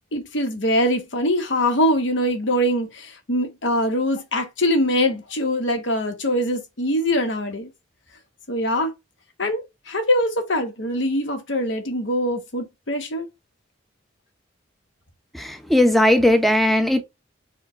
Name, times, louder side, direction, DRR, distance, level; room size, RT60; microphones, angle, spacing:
voice 1, 0.1-7.7 8.5-8.9 9.4-13.3, left 1 dB, 75° left, 1.2 m, -23 dB
voice 2, 15.3-17.0, left 1 dB, ahead, 0.6 m, -18 dB
4.9 x 2.3 x 4.0 m
head